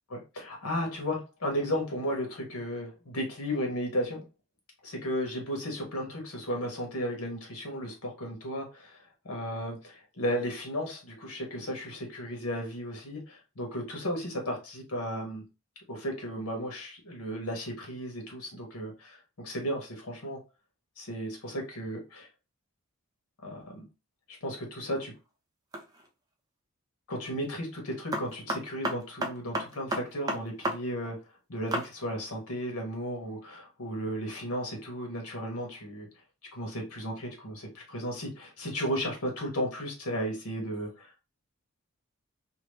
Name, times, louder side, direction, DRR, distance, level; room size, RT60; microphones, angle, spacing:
voice 1, 0.1-4.2 4.8-15.4 15.9-20.4 21.0-22.3 23.4-23.9 24.4-25.1 27.1-31.2 31.5-36.1 36.5-41.2, equal, 85° left, 1.2 m, -34 dB
sound 1, 25.7-26.1 28.1-30.8 31.0-31.1 31.7-31.9, right 1 dB, 15° right, 0.4 m, -31 dB
2.9 x 2.0 x 3.2 m
head